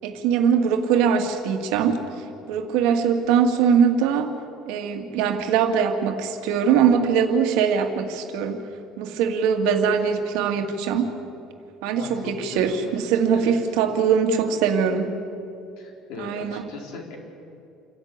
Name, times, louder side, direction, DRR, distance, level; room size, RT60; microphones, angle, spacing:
voice 1, 0.0-2.0 2.5-4.3 4.7-8.6 9.0-11.1 11.8-15.1 16.2-16.6, right 7 dB, 75° right, 6 dB, 2.1 m, -22 dB
voice 2, 11.9-12.9 13.3-13.6 15.8-17.2, left 4 dB, 65° left, 1 dB, 4.2 m, -38 dB
28.0 x 11.0 x 8.8 m, 2.6 s
cardioid pair, 170°, 0 cm